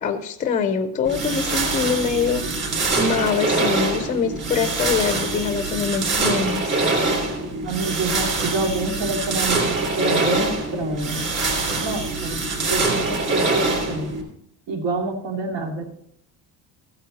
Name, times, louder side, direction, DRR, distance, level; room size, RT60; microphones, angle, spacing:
voice 1, 0.0-2.4 2.9-6.8, left 6 dB, 20° left, 9 dB, 0.5 m, -24 dB
sound 1, 1.0-14.2, right 3 dB, 25° right, 3.2 m, -24 dB
voice 2, 7.6-11.2 11.8-12.4 12.7-14.1 14.7-15.8, right 2 dB, 75° right, 2 dB, 2.7 m, -27 dB
15.0 x 8.7 x 4.0 m, 0.73 s
cardioid pair, 180°, 42 cm